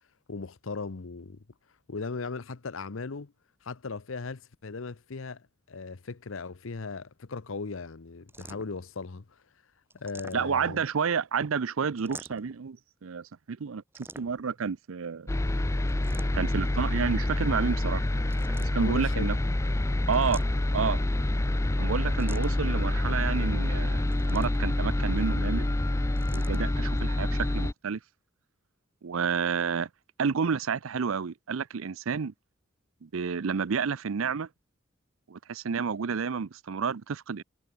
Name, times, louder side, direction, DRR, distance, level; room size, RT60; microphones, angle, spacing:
voice 1, 0.3-1.4 1.9-3.3 3.6-9.2 9.9-10.8 18.8-19.3, left 4 dB, 75° left, 0.8 m, -38 dB
sound 1, 8.3-8.9 9.9-10.8 12.0-12.6 13.9-14.6 15.9-16.7 18.3-19.0 20.1-20.9 22.2-22.7 24.1-24.8 26.2-26.6, right 2 dB, 10° right, 2.4 m, -47 dB
voice 2, 10.3-13.8 14.2-15.3 16.3-18.0 18.6-19.4 20.1-20.4 20.7-21.0 21.8-25.7 26.3-28.0 29.0-29.9 30.2-32.3 33.0-34.5 35.3-37.4, right 6 dB, 80° right, 0.5 m, -30 dB
sound 2, 15.3-27.7, left 1 dB, 15° left, 0.4 m, -27 dB
head